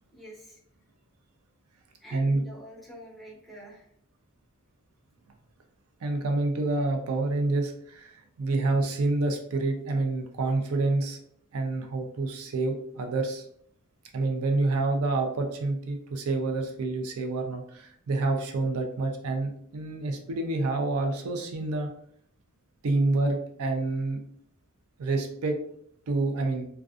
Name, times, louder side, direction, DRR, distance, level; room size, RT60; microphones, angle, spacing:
voice 1, 0.1-0.6 2.0-3.9 5.2-5.3, right 1 dB, ahead, -5 dB, 0.7 m, -47 dB
voice 2, 2.1-2.4 6.0-11.2 11.5-13.5 14.1-21.9 22.8-24.2 25.0-25.6 26.1-26.7, right 2 dB, 80° right, 4 dB, 0.4 m, -28 dB
2.5 x 2.2 x 2.3 m, 0.64 s
head